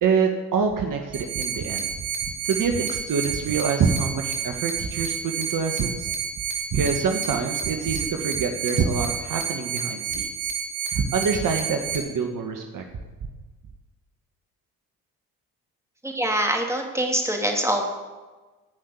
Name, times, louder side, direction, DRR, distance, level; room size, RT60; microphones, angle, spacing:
voice 1, 0.0-1.9 2.2-6.1 6.7-10.5 10.9-12.8, right 5 dB, 55° right, 4 dB, 1.6 m, -26 dB
sound 1, 1.1-12.0, right 7 dB, 80° right, 2.4 m, -30 dB
voice 2, 16.0-17.9, right 1 dB, 5° right, 1 dB, 3.1 m, -24 dB
16.0 x 5.8 x 8.3 m, 1.3 s
hypercardioid pair, 60°, 39 cm